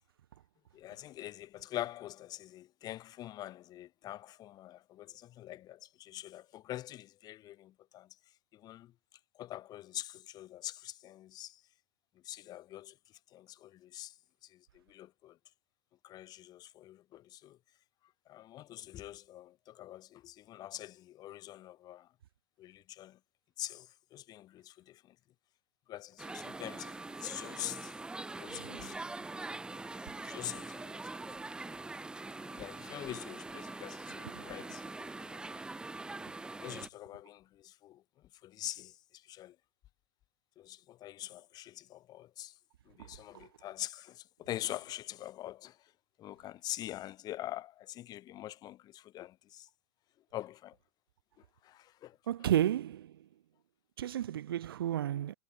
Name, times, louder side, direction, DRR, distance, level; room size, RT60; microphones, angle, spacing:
voice 1, 0.7-8.1 8.5-8.9 9.4-11.6 12.2-12.9 13.3-14.1 14.4-15.4 16.0-17.6 18.3-22.1 22.6-23.2 23.6-25.1 25.9-27.9 28.4-29.0 30.2-31.4 32.4-35.6 36.6-38.0 38.4-39.5 40.6-42.5 42.9-45.8 46.2-49.7 50.3-50.8 51.6-52.2, left 14 dB, 35° left, 2.9 m, -45 dB
sound 1, 26.2-36.9, right 2 dB, 5° right, 1.3 m, -43 dB
voice 2, 28.5-28.9 34.3-34.4 43.3-43.5 52.3-53.2 54.0-55.3, right 11 dB, 75° right, 0.4 m, -32 dB
hypercardioid pair, 110°, 12 cm